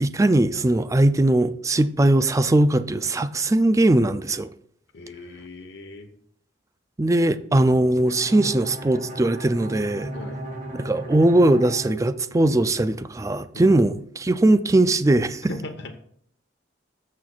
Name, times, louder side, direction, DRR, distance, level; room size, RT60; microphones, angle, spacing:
voice 1, 0.0-4.5 7.0-10.1 10.8-15.5, right 1 dB, 15° right, 0.4 m, -20 dB
voice 2, 4.9-6.1 10.1-10.4 13.5-13.8 15.5-16.0, left 2 dB, 60° left, 1.0 m, -38 dB
Bowed string instrument, 8.1-12.9, right 1 dB, 45° right, 2.1 m, -36 dB
13.0 x 7.7 x 2.4 m
head